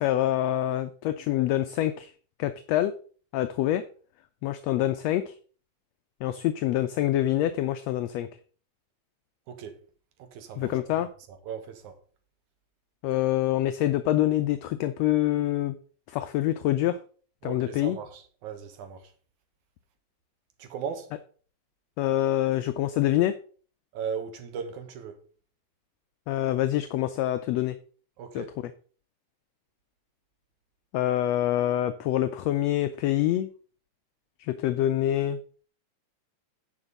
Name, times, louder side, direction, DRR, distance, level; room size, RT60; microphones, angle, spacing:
voice 1, 0.0-2.1 2.4-2.9 3.3-3.8 4.4-5.4 6.2-8.3 10.6-11.1 13.0-15.8 16.1-17.0 17.4-18.0 22.0-23.3 26.3-27.8 28.3-28.4 30.9-33.5 34.4-35.4, left 13 dB, 75° left, 1.6 m, -26 dB
voice 2, 9.5-9.8 10.2-10.7 11.5-12.0 17.4-19.1 20.6-21.1 23.9-25.2 28.2-28.5, right 7 dB, 90° right, 2.8 m, -37 dB
9.9 x 5.8 x 5.3 m
omnidirectional pair, 3.3 m